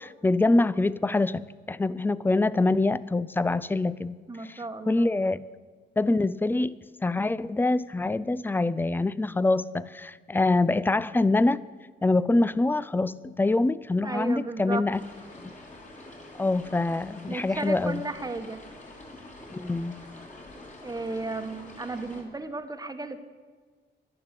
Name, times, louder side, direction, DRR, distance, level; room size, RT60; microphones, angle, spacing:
voice 1, 0.0-1.4 1.7-4.2 4.4-5.4 6.0-11.7 12.0-15.0 15.4-15.6 16.3-18.0 19.5-19.9, left 2 dB, 10° left, 0.4 m, -25 dB
voice 2, 4.3-5.1 14.0-14.8 17.3-18.6 20.8-23.2, right 3 dB, 20° right, 1.1 m, -34 dB
sound 1, 14.9-22.2, left 2 dB, 40° left, 3.2 m, -46 dB
12.0 x 11.0 x 8.2 m
cardioid pair, 105°, 20 cm